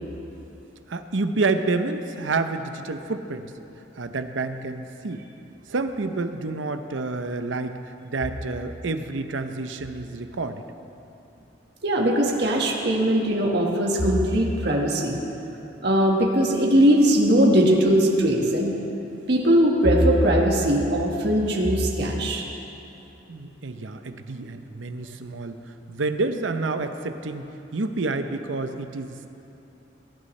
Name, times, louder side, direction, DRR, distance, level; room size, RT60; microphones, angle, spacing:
voice 1, 0.9-3.5 3.9-5.2 5.7-10.6 23.3-25.6 25.9-29.3, right 3 dB, 70° right, 8 dB, 0.7 m, -29 dB
voice 2, 11.8-15.2 15.8-18.7 19.3-22.4, equal, 55° right, -1 dB, 1.6 m, -20 dB
21.5 x 11.0 x 3.2 m, 2.9 s
head